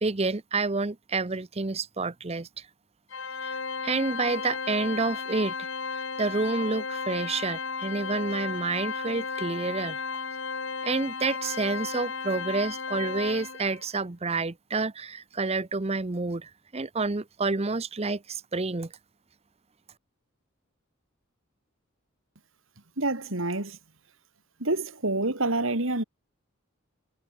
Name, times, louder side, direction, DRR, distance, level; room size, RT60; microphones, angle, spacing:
voice 1, 0.0-2.7 3.4-5.7 5.9-10.0 10.8-18.9, right 3 dB, 30° right, 0.8 m, -29 dB
Organ, 3.1-13.8, left 4 dB, 65° left, 2.9 m, -34 dB
voice 2, 23.0-23.8 24.6-26.0, right 2 dB, 70° right, 2.9 m, -27 dB
head